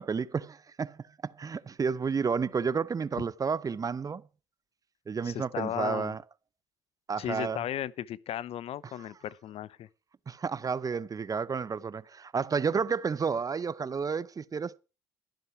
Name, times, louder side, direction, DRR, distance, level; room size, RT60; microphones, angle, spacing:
voice 1, 0.0-4.2 5.1-6.2 7.1-7.6 8.8-9.1 10.3-14.8, right 5 dB, 30° right, 0.6 m, -31 dB
voice 2, 5.2-6.1 7.2-9.9, left 11 dB, 55° left, 0.8 m, -35 dB
13.0 x 11.0 x 4.7 m
hypercardioid pair, 60°, 12 cm